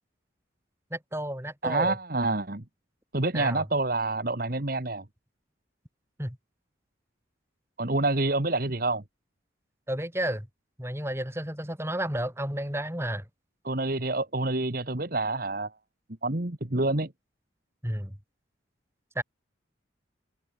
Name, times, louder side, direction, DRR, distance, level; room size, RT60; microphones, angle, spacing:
voice 1, 0.9-2.0 3.3-3.6 6.2-6.4 9.9-10.5 10.8-13.2 17.8-18.2 19.1-19.2, right 1 dB, 15° right, 7.9 m, -32 dB
voice 2, 1.6-2.6 3.1-5.0 7.8-9.0 13.6-15.7 16.2-17.1, right 2 dB, 50° right, 1.8 m, -27 dB
head